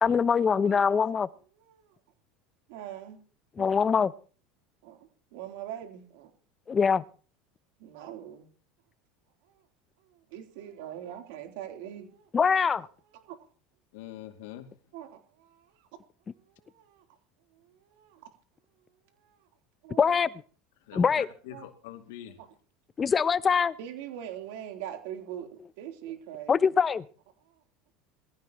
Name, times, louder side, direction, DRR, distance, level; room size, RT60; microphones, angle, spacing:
voice 1, 0.0-1.3 3.6-4.1 6.7-7.0 12.3-12.9 20.0-20.3 21.0-21.3 23.0-23.7 26.5-27.1, left 6 dB, 25° left, 0.6 m, -23 dB
voice 2, 1.5-2.0 2.7-3.2 3.6-3.8 4.8-5.0 5.3-6.3 7.8-8.5 9.4-9.6 10.0-12.3 13.1-13.4 14.9-15.9 16.3-17.0 17.5-18.3 19.1-19.5 19.8-20.0 20.9-21.0 21.5-21.7 22.4-22.5 23.8-26.7, right 10 dB, 80° right, 3.5 m, -43 dB
voice 3, 13.9-14.7 20.9-22.4, left 12 dB, 85° left, 2.5 m, -43 dB
21.5 x 15.5 x 3.0 m
supercardioid pair, 125°, 0 cm